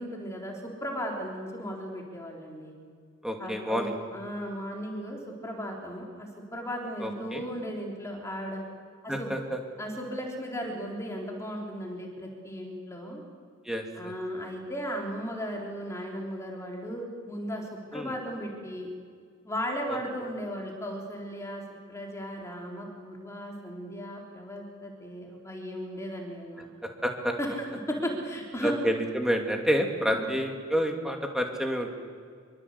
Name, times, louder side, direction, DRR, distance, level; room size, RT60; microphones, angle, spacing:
voice 1, 0.0-2.7 3.4-8.6 9.0-9.3 9.8-13.2 14.0-18.9 19.4-21.6 21.9-26.7 27.4-28.7 30.1-30.3, equal, 15° left, 0 dB, 3.9 m, -36 dB
voice 2, 3.2-4.0 7.0-7.4 9.1-9.6 13.6-14.1 17.9-18.1 26.8-27.3 28.6-31.9, equal, ahead, 2 dB, 2.5 m, -29 dB
25.5 x 23.5 x 8.3 m, 2.1 s
head